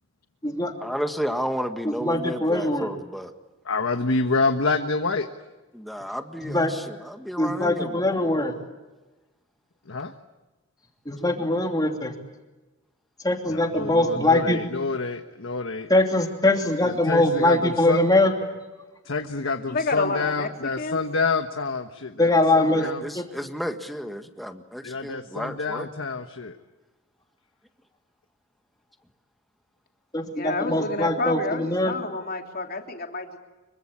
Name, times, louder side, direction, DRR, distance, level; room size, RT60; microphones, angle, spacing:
voice 1, 0.8-3.3 5.7-8.0 22.7-25.9, equal, ahead, 6 dB, 1.7 m, -32 dB
voice 2, 2.0-2.9 6.4-6.7 7.4-8.5 11.0-12.1 13.2-14.6 15.9-18.3 22.2-22.8 23.1-23.2 30.1-31.9, left 1 dB, 20° left, 3 dB, 2.8 m, -22 dB
voice 3, 3.7-5.3 9.9-10.1 13.7-15.9 17.1-17.6 17.9-18.0 19.1-22.1 22.8-23.0 24.8-26.5, left 3 dB, 70° left, 6 dB, 1.3 m, -27 dB
voice 4, 19.7-21.0 30.4-33.4, left 3 dB, 45° left, 3 dB, 3.0 m, -29 dB
26.0 x 24.0 x 8.7 m, 1.1 s
head